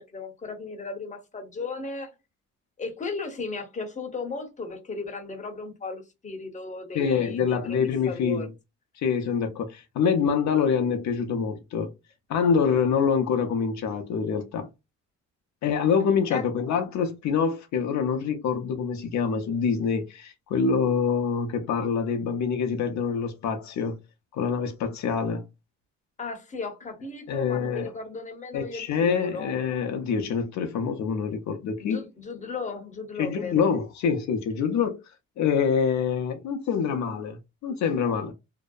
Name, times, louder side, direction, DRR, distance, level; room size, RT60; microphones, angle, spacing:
voice 1, 0.0-2.2 2.8-8.5 16.3-16.5 26.2-29.6 31.8-33.7, left 4 dB, 25° left, 0.8 m, -36 dB
voice 2, 6.9-8.5 9.0-11.9 12.3-14.7 15.6-24.0 24.3-25.4 27.3-27.9 28.5-32.0 33.2-35.0 35.4-38.3, left 6 dB, 70° left, 0.6 m, -25 dB
2.7 x 2.1 x 2.3 m
cardioid pair, 90°, 30 cm